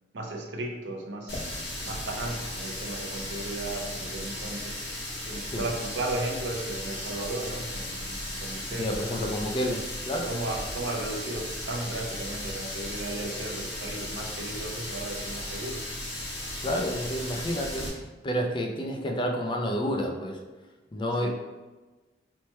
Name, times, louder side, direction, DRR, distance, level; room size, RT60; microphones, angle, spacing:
voice 1, 0.1-1.6 1.8-4.7 5.3-9.4 10.3-15.9 21.1-21.3, right 2 dB, 80° right, 0 dB, 0.6 m, -35 dB
Water tap faucet, 1.3-17.9, left 1 dB, 70° left, 1.1 m, -36 dB
voice 2, 8.7-10.3 16.6-18.0 18.2-20.4 20.9-21.3, equal, 30° left, 2 dB, 0.4 m, -29 dB
3.2 x 2.1 x 4.2 m, 1.2 s
head